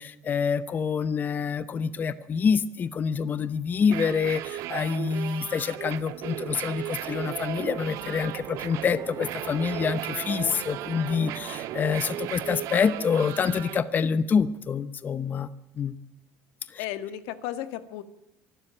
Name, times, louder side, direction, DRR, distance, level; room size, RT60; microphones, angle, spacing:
voice 1, 0.0-15.5 15.8-15.9 16.7-16.8, left 6 dB, 30° left, 15 dB, 0.8 m, -27 dB
sound 1, 3.8-13.8, right 14 dB, 70° right, 1.3 m, -36 dB
sound 2, 6.9-12.3, right 12 dB, 55° right, 0.7 m, -41 dB
voice 2, 16.8-18.0, left 12 dB, 85° left, 11 dB, 1.6 m, -34 dB
25.0 x 12.0 x 8.9 m, 0.89 s
cardioid pair, 130°, 6 cm